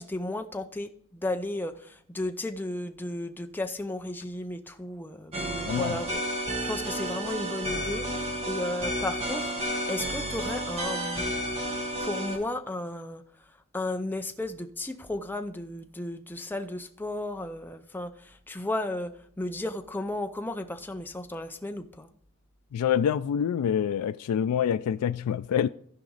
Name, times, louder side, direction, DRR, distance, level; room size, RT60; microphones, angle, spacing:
voice 1, 0.0-9.5 9.9-11.3 12.0-13.2 13.7-22.1, left 1 dB, 10° left, 0.5 m, -34 dB
sound 1, 5.3-12.4, right 1 dB, 25° right, 1.6 m, -31 dB
voice 2, 5.6-6.0 22.7-25.7, left 8 dB, 90° left, 0.3 m, -26 dB
15.0 x 5.0 x 3.9 m
head